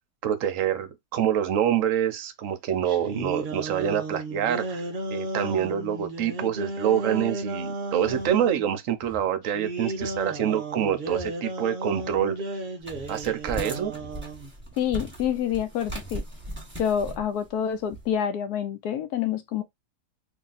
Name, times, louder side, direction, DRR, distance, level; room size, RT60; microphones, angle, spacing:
voice 1, 0.2-4.8 5.1-12.4 13.1-13.9, right 9 dB, 65° right, 0.8 m, -26 dB
sound 1, 2.8-8.6 9.4-14.5, right 2 dB, 80° right, 0.4 m, -34 dB
sound 2, 8.0-8.4 9.0-9.3 9.9-10.3 11.0-11.3 12.0-12.3 12.9-13.1 13.9-14.3 14.9-15.2 15.9-16.2, left 1 dB, 15° left, 0.3 m, -46 dB
sound 3, 12.8-18.1, right 1 dB, 5° right, 1.2 m, -38 dB
voice 2, 14.8-16.2 16.8-19.6, left 9 dB, 70° left, 1.0 m, -27 dB
2.9 x 2.7 x 3.9 m
omnidirectional pair, 1.8 m